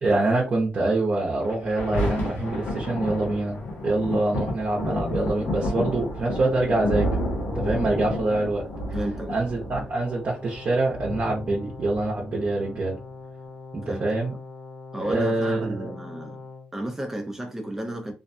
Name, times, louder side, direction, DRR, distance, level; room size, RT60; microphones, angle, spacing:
voice 1, 0.0-7.1 7.5-8.6 9.3-13.0 13.7-14.3 15.0-15.9, right 2 dB, 45° right, 0.7 m, -25 dB
Thunder, 1.4-12.4 13.1-13.2, left 1 dB, 85° left, 0.9 m, -30 dB
voice 2, 8.9-9.4 11.5-11.6 13.8-14.1 14.9-16.4 16.7-18.1, right 1 dB, 10° right, 0.5 m, -33 dB
Brass instrument, 9.8-16.7, left 3 dB, 20° left, 1.1 m, -42 dB
2.5 x 2.2 x 2.6 m
cardioid pair, 85°, 3 cm